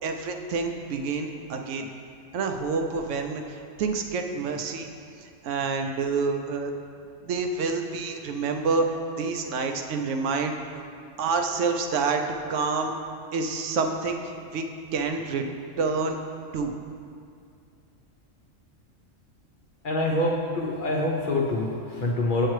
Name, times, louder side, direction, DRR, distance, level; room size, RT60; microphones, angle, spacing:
voice 1, 0.0-1.9 2.3-4.9 5.4-6.7 7.2-10.8 11.2-12.2 12.5-13.0 13.3-14.6 14.9-15.4 15.8-16.2 16.5-16.7, right 4 dB, 75° right, 4 dB, 0.9 m, -28 dB
voice 2, 19.8-22.5, left 2 dB, 50° left, -1 dB, 0.7 m, -26 dB
7.5 x 6.5 x 3.1 m, 2.3 s
omnidirectional pair, 1.3 m